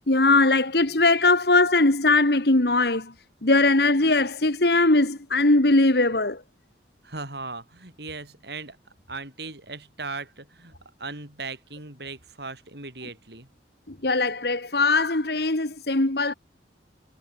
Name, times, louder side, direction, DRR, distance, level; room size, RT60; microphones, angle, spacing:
voice 1, 0.1-3.1 3.4-6.4 13.9-16.3, left 2 dB, 60° left, 1.8 m, -20 dB
voice 2, 7.0-8.8 9.1-10.7 11.0-13.5, right 3 dB, 60° right, 5.8 m, -38 dB
head